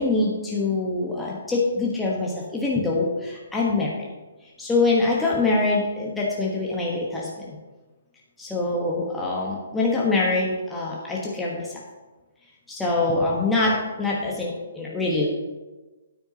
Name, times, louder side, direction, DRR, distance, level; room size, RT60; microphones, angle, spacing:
voice 1, 0.0-4.0 4.6-7.6 8.4-11.7 12.7-15.3, left 3 dB, 5° left, -5 dB, 1.2 m, -24 dB
9.0 x 8.7 x 2.9 m, 1.2 s
figure-of-eight pair, 135°, 0 cm